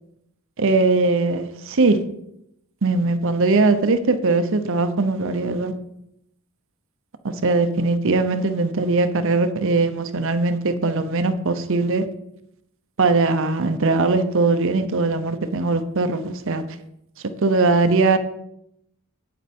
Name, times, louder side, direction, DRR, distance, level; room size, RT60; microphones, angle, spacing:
voice 1, 0.6-2.0 2.8-5.7 7.4-12.0 13.0-16.6 17.4-18.2, right 3 dB, 60° right, 0.8 m, -20 dB
8.7 x 8.3 x 4.4 m
head